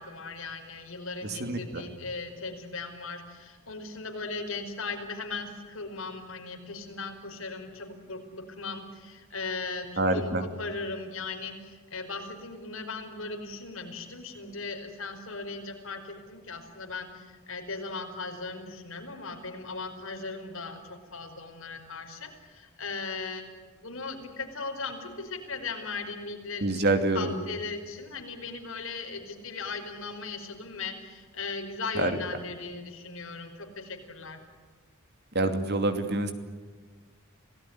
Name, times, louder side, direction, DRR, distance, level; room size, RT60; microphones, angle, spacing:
voice 1, 0.0-23.4 23.7-34.4, left 3 dB, 70° left, 4 dB, 5.1 m, -38 dB
voice 2, 1.4-1.8 10.0-10.4 26.6-27.3 32.0-32.1 35.3-36.3, right 2 dB, 50° right, 7 dB, 2.7 m, -26 dB
27.5 x 18.5 x 9.8 m, 1.4 s
head